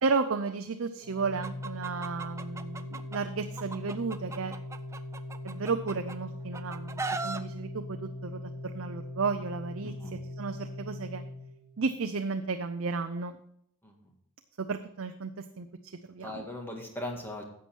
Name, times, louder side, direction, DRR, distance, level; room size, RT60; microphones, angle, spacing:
voice 1, 0.0-4.5 5.4-9.9 10.4-11.2 11.8-13.4 14.6-16.5, right 4 dB, 60° right, 7 dB, 0.5 m, -33 dB
Organ, 1.0-11.9, left 1 dB, 80° left, 2.0 m, -41 dB
Chicken rooster, 1.4-3.2 3.6-6.2 6.5-7.4, right 3 dB, 15° right, 0.4 m, -37 dB
voice 2, 9.8-10.2 13.8-14.1 16.2-17.4, left 1 dB, 10° left, 1 dB, 1.8 m, -39 dB
11.0 x 7.6 x 4.5 m, 0.68 s
head